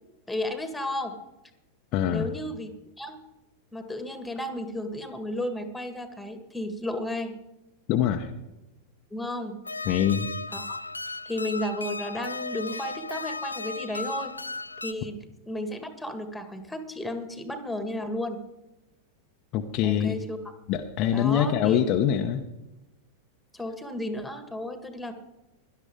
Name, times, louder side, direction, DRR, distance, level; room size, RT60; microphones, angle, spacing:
voice 1, 0.3-1.1 2.1-2.7 3.0-3.2 3.7-7.4 9.1-9.6 10.5-10.8 11.3-14.3 14.8-15.2 15.5-18.4 19.8-20.4 21.1-21.8 23.5-25.1, left 1 dB, 5° left, 8 dB, 1.8 m, -33 dB
voice 2, 1.9-2.3 7.9-8.3 9.8-10.3 19.5-20.2 20.7-22.5, left 9 dB, 40° left, 4 dB, 0.9 m, -24 dB
sound 1, 9.6-14.9, left 3 dB, 80° left, 0.5 m, -35 dB
17.0 x 12.0 x 3.7 m, 0.97 s
figure-of-eight pair, 90°, 0 cm